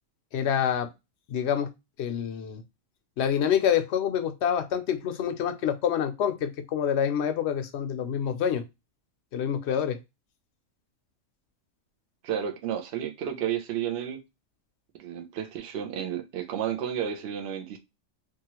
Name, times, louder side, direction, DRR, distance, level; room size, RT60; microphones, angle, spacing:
voice 1, 0.3-0.9 1.3-1.7 2.0-2.6 3.2-8.6 9.3-10.0, left 8 dB, 65° left, 0.8 m, -27 dB
voice 2, 12.2-14.2 15.0-17.8, right 9 dB, 55° right, 0.7 m, -32 dB
3.0 x 2.4 x 2.9 m
omnidirectional pair, 1.4 m